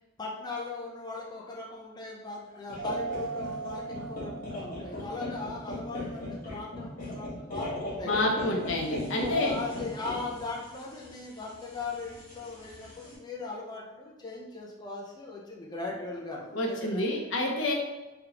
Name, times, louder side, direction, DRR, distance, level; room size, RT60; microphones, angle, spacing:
voice 1, 0.2-8.6 9.2-17.2, left 3 dB, 20° left, -3 dB, 0.6 m, -39 dB
sound 1, 2.7-13.1, left 1 dB, 45° left, 1.4 m, -39 dB
Mallet percussion, 2.8-5.3, right 5 dB, 65° right, 1.3 m, -38 dB
voice 2, 8.0-9.5 16.5-17.7, left 1 dB, 75° left, 0 dB, 0.7 m, -28 dB
3.6 x 3.4 x 2.9 m, 1.1 s
head